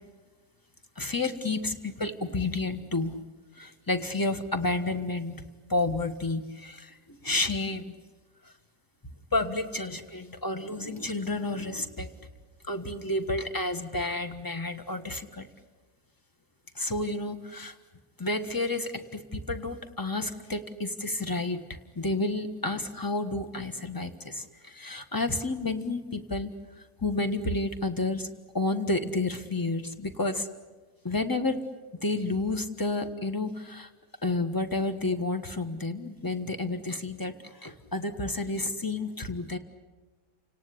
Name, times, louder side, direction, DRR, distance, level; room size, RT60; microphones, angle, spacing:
voice 1, 1.0-3.2 3.6-5.4 5.7-7.9 9.3-12.1 12.7-15.5 16.7-17.7 18.2-21.6 22.0-26.5 27.0-28.3 28.5-30.5 31.0-31.6 32.0-33.9 34.2-39.6, left 2 dB, 15° left, 8 dB, 1.4 m, -30 dB
30.0 x 18.5 x 10.0 m, 1.3 s
omnidirectional pair, 1.8 m